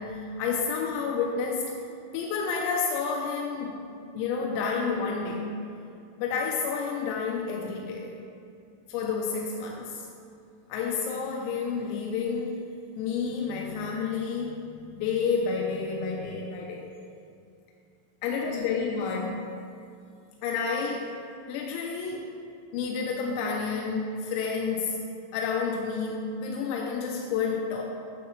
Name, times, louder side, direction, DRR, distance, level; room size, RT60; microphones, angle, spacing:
voice 1, 0.0-1.7 2.1-3.9 4.1-5.5 6.2-8.2 8.9-10.1 10.7-12.7 13.0-16.9 18.2-19.6 20.4-21.1 21.5-22.3 22.7-25.0 25.3-27.8, left 5 dB, 90° left, -1 dB, 3.4 m, -30 dB
9.4 x 8.1 x 3.1 m, 2.5 s
omnidirectional pair, 5.9 m